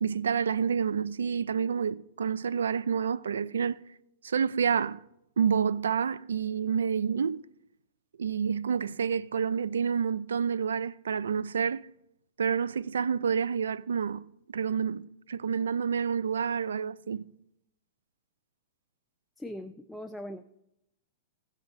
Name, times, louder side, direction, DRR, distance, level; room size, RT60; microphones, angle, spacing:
voice 1, 0.0-3.8 4.2-5.0 5.4-7.4 8.2-11.8 12.4-14.3 14.5-17.3, right 7 dB, 85° right, 0.4 m, -28 dB
voice 2, 19.4-20.4, left 1 dB, 5° left, 0.5 m, -40 dB
16.0 x 7.3 x 4.0 m
hypercardioid pair, 120°, 0 cm